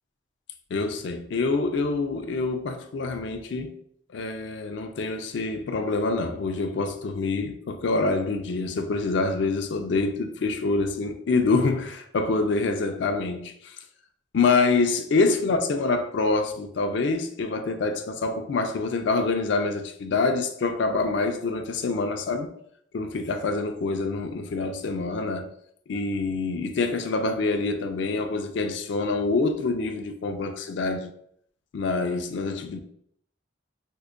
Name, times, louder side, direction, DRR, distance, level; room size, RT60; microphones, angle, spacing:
voice 1, 0.7-3.7 4.1-13.8 14.3-22.5 22.9-25.5 25.9-31.1 31.7-32.8, left 3 dB, 65° left, 0.4 m, -26 dB
4.4 x 2.2 x 2.4 m
head